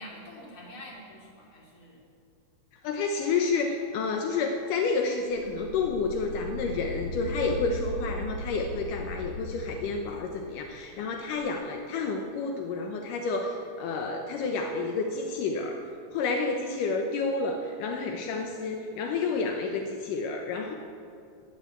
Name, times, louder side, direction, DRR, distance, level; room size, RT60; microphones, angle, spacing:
voice 1, 0.0-2.1, left 1 dB, 40° left, -2 dB, 3.5 m, -46 dB
voice 2, 2.8-15.8 16.1-20.8, left 4 dB, 80° left, 3 dB, 2.5 m, -30 dB
sound 1, 5.3-10.9 11.4-11.5, equal, 65° left, 1.2 m, -38 dB
13.0 x 10.5 x 8.7 m, 2.5 s
omnidirectional pair, 3.8 m